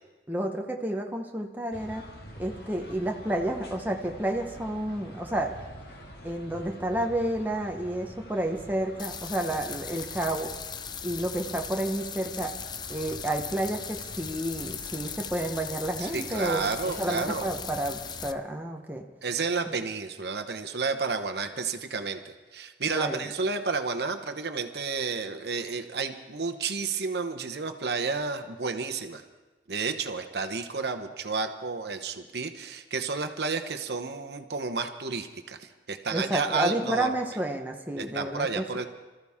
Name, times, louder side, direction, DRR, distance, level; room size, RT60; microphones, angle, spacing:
voice 1, 0.3-2.0 2.4-5.5 6.2-10.5 11.0-12.5 12.9-19.0 22.9-23.2 36.1-38.8, right 1 dB, 10° right, 2 dB, 1.0 m, -30 dB
sound 1, 1.7-18.3, equal, 60° left, 1.9 m, -47 dB
sound 2, 9.0-18.3, left 7 dB, 25° left, 0.4 m, -39 dB
voice 2, 16.0-17.5 19.2-29.2 29.7-37.1 38.0-38.9, right 4 dB, 70° right, 7 dB, 1.0 m, -31 dB
25.5 x 14.0 x 3.6 m, 1.2 s
head